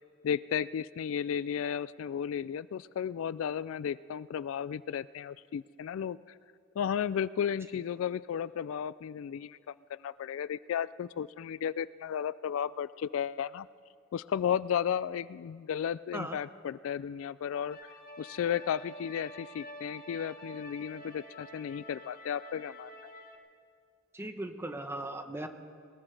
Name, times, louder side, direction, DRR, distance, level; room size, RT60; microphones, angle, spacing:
voice 1, 0.2-6.4 6.8-13.7 14.1-17.8 18.2-23.1, left 8 dB, 70° left, 18 dB, 0.3 m, -34 dB
sound 1, 17.7-23.4, equal, 45° left, 1.4 m, -48 dB
voice 2, 24.1-25.5, right 1 dB, 10° right, 7 dB, 0.9 m, -38 dB
21.0 x 20.0 x 3.4 m, 2.3 s
head